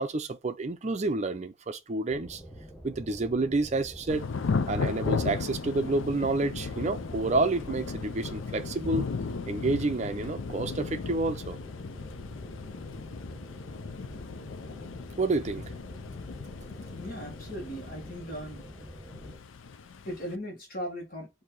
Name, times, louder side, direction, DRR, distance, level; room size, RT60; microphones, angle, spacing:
voice 1, 0.0-2.4 2.8-4.3 4.7-9.1 9.5-11.6 15.2-15.7, right 2 dB, 35° right, 0.5 m, -29 dB
sound 1, 2.1-19.4, equal, ahead, 1.0 m, -47 dB
Thunder / Rain, 4.1-20.3, left 4 dB, 75° left, 0.5 m, -36 dB
voice 2, 17.0-18.6 20.0-21.3, equal, 45° left, 1.6 m, -38 dB
4.6 x 2.7 x 4.0 m
head